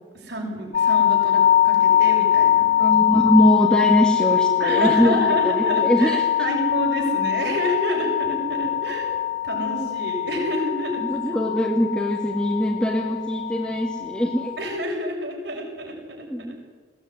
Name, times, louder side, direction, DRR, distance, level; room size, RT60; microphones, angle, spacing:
voice 1, 0.1-2.7 4.6-9.2 9.4-11.4 14.6-16.7, equal, 60° right, 0 dB, 6.9 m, -29 dB
sound 1, 0.7-14.8, left 11 dB, 40° left, 0.7 m, -22 dB
voice 2, 2.8-6.2 11.0-14.5 16.3-16.5, equal, 5° left, -2 dB, 2.0 m, -22 dB
21.0 x 17.5 x 9.6 m, 1.4 s
head